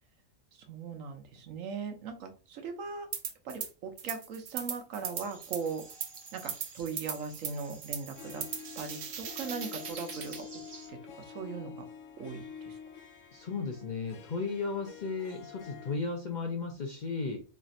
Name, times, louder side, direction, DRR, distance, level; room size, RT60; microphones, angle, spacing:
voice 1, 0.5-3.1 3.4-5.8 6.3-8.4 8.8-10.5 10.9-11.9 12.2-12.8, right 5 dB, 80° right, 6 dB, 1.2 m, -39 dB
sound 1, 3.1-3.7 4.0-10.4, right 7 dB, 60° right, 0.9 m, -39 dB
sound 2, 5.1-10.9, right 3 dB, 35° right, 0.4 m, -53 dB
Harp, 8.1-16.0, left 7 dB, 75° left, 0.9 m, -48 dB
voice 2, 13.3-17.4, left 4 dB, 50° left, 3 dB, 0.6 m, -35 dB
3.2 x 2.5 x 4.1 m, 0.32 s
omnidirectional pair, 1.4 m